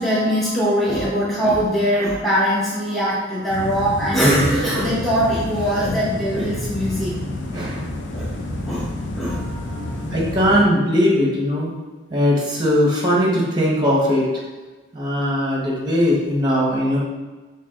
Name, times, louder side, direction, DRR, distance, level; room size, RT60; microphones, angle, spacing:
voice 1, 0.0-7.1 8.1-8.3 8.7-8.9 9.2-9.9, equal, ahead, -9 dB, 0.6 m, -21 dB
sound 1, 3.5-10.6, left 1 dB, 60° left, 0.5 m, -29 dB
voice 2, 7.5-7.8 10.1-11.7 12.1-14.2 14.9-17.0, equal, 20° right, -4 dB, 0.9 m, -19 dB
3.2 x 2.8 x 3.6 m, 1.2 s
head